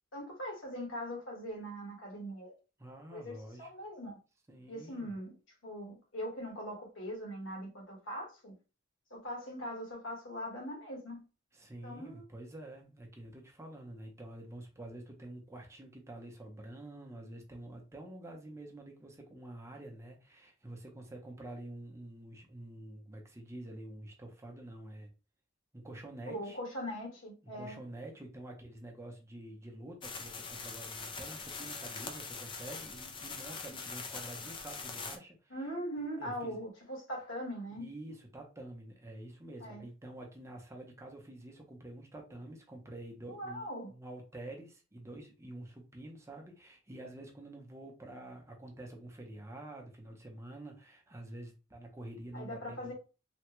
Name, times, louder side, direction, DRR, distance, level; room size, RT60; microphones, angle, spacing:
voice 1, 0.1-2.5 3.1-4.2 4.7-5.3 5.6-8.5 9.1-11.2 11.8-12.2 26.3-27.8 35.5-37.9 39.6-39.8 43.3-43.9 52.3-52.9, equal, 65° left, 1.4 m, -41 dB
voice 2, 2.8-3.7 4.5-5.1 11.5-25.1 25.7-26.6 27.4-35.6 36.2-36.6 37.7-52.9, right 1 dB, 15° right, 0.6 m, -48 dB
sound 1, 30.0-35.2, left 4 dB, 25° left, 0.4 m, -43 dB
3.3 x 2.2 x 3.0 m
head